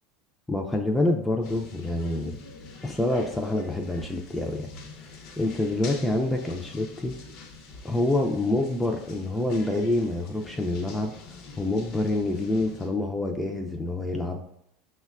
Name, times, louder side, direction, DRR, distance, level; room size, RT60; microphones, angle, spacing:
voice 1, 0.5-2.4 2.8-4.7 5.4-7.1 7.8-11.1 11.6-14.4, left 2 dB, 5° left, 1 dB, 0.3 m, -27 dB
sound 1, 1.4-12.9, left 4 dB, 55° left, 0.6 m, -45 dB
5.3 x 2.2 x 2.3 m, 0.74 s
supercardioid pair, 110°, 0 cm